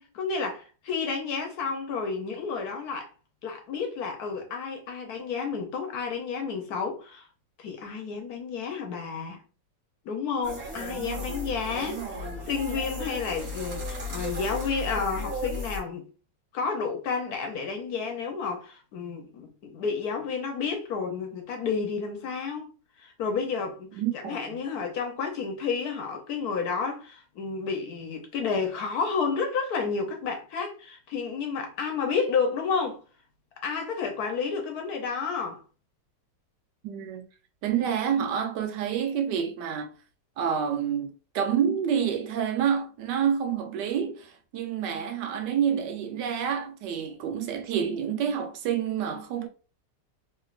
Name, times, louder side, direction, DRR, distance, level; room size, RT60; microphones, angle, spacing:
voice 1, 0.0-3.1 3.4-7.3 7.6-9.4 10.0-16.0 16.5-22.7 23.0-33.0 33.6-35.6, left 5 dB, 65° left, 1.1 m, -31 dB
sound 1, 10.4-15.8, left 2 dB, 40° right, 1.2 m, -35 dB
voice 2, 10.8-12.5 24.0-24.6 36.8-37.2 37.6-39.9 40.4-49.5, right 8 dB, 75° right, 1.2 m, -29 dB
3.2 x 3.0 x 2.4 m
omnidirectional pair, 2.0 m